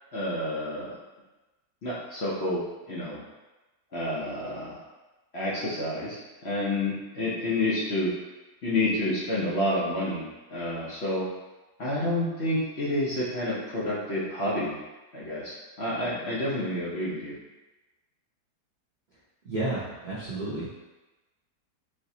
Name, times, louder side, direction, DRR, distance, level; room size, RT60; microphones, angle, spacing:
voice 1, 0.1-0.9 1.8-2.6 2.9-3.2 3.9-4.8 5.3-8.1 8.6-11.2 11.8-14.8 15.1-17.3, left 1 dB, 50° left, -8 dB, 0.9 m, -29 dB
voice 2, 19.5-20.7, right 2 dB, 50° right, -9 dB, 0.5 m, -31 dB
3.4 x 2.9 x 2.7 m, 1.1 s
omnidirectional pair, 1.7 m